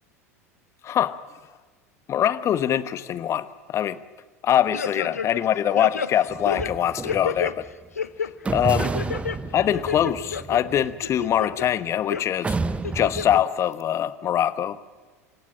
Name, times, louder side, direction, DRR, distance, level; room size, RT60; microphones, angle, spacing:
voice 1, 0.8-1.2 2.1-4.0 4.4-7.6 8.5-8.9 9.5-12.6 12.9-14.8, left 10 dB, 35° left, 15 dB, 1.1 m, -23 dB
sound 1, 4.7-5.5 5.8-7.5 7.9-8.3 8.8-9.4 9.7-10.6 11.0-11.7 12.1-12.2 12.8-13.4 13.8-13.9, left 6 dB, 85° left, 0.8 m, -30 dB
sound 2, 6.3-7.7 8.4-11.9 12.4-13.4, right 3 dB, 15° right, 0.9 m, -31 dB
26.5 x 16.5 x 7.3 m, 1.4 s
figure-of-eight pair, 80°, 8 cm